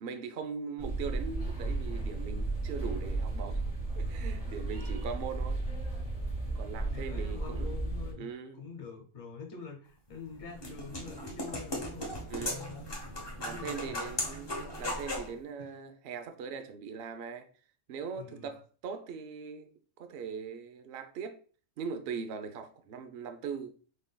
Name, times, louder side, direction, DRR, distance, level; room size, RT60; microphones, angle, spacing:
voice 1, 0.0-3.6 4.0-5.6 6.5-7.7 8.2-8.6 12.3-12.7 13.4-17.5 17.9-19.7 20.0-21.4 21.8-23.7, right 6 dB, 60° right, 0.6 m, -40 dB
sound 1, 0.8-8.1, right 2 dB, 5° right, 1.2 m, -34 dB
voice 2, 6.9-12.1 12.4-12.9 13.5-14.2 15.6-15.8 18.2-18.6, left 5 dB, 55° left, 1.3 m, -46 dB
sound 2, 10.1-15.3, left 1 dB, 20° left, 0.8 m, -37 dB
4.1 x 3.7 x 2.2 m
omnidirectional pair, 1.5 m